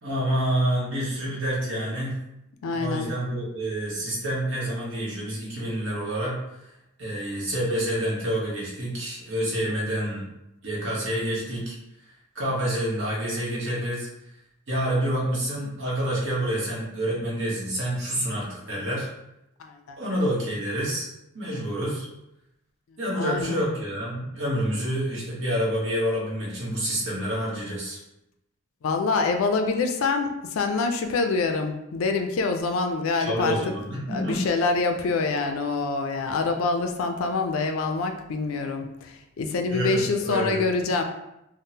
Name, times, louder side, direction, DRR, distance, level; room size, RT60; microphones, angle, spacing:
voice 1, 0.0-2.2 2.7-6.4 7.0-10.3 10.6-11.7 12.3-14.1 14.7-19.1 20.0-21.1 21.3-22.1 23.0-28.0 33.2-34.5 39.7-40.7, right 1 dB, 60° right, -5 dB, 1.0 m, -28 dB
voice 2, 2.6-3.1 19.6-20.0 23.2-23.8 28.8-33.6 34.1-41.0, left 4 dB, 75° left, 5 dB, 0.4 m, -26 dB
3.6 x 2.1 x 2.7 m, 0.86 s
head